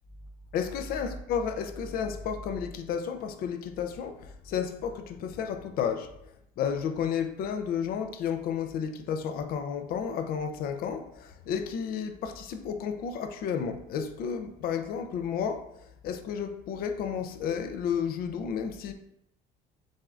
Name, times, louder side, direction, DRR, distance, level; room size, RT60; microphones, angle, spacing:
voice 1, 0.5-6.1 6.6-18.9, left 7 dB, 65° left, 0.5 m, -32 dB
7.4 x 2.5 x 2.3 m
cardioid pair, 130°, 17 cm